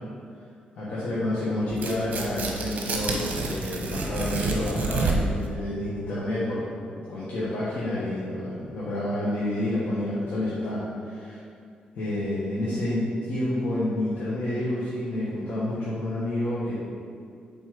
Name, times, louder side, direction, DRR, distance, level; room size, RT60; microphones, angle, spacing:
voice 1, 0.8-6.6 7.1-11.4 11.9-16.8, left 1 dB, 70° left, -9 dB, 1.4 m, -29 dB
Tearing, 1.7-5.4, right 3 dB, 60° right, 1.0 m, -29 dB
7.5 x 4.1 x 5.0 m, 2.4 s
cardioid pair, 130°, 3 cm